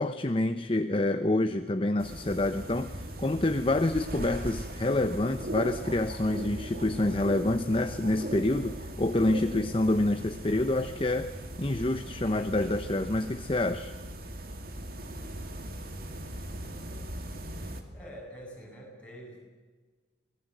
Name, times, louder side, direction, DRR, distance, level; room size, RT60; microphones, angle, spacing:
voice 1, 0.0-11.3 11.6-13.9, left 2 dB, 30° left, 9 dB, 0.8 m, -27 dB
sound 1, 2.0-17.8, right 1 dB, 50° right, 2.6 m, -39 dB
voice 2, 17.9-19.4, equal, 5° left, -3 dB, 8.0 m, -45 dB
25.0 x 19.5 x 8.0 m, 1.3 s
head